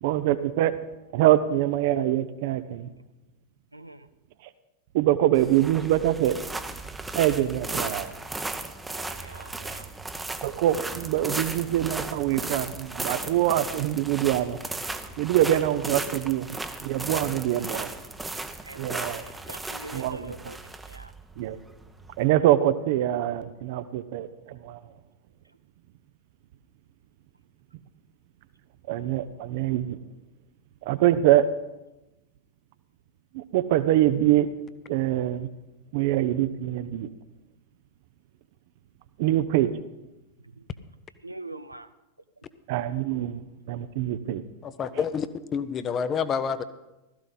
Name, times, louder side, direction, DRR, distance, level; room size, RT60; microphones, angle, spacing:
voice 1, 0.0-0.7 1.1-2.9 4.9-6.4 7.1-8.1 10.4-14.6 15.2-16.5 16.8-17.9 18.8-19.2 19.9-20.5 21.4-21.6 22.2-24.8 28.9-30.0 30.8-31.4 33.3-34.5 34.9-35.5 35.9-37.1 39.2-39.7 42.7-43.4 43.7-44.4, right 13 dB, 50° right, 13 dB, 0.7 m, -24 dB
voice 2, 3.7-4.1 8.9-9.9 17.7-17.8 18.6-20.6 20.9-21.1 40.6-40.7 41.2-41.9, right 2 dB, 85° right, 11 dB, 0.5 m, -43 dB
sound 1, 5.3-22.3, right 2 dB, 10° right, 0.9 m, -36 dB
voice 3, 44.6-45.3 45.5-46.6, left 6 dB, 25° left, 12 dB, 0.8 m, -28 dB
16.0 x 13.5 x 4.0 m, 0.99 s
figure-of-eight pair, 90°, 0 cm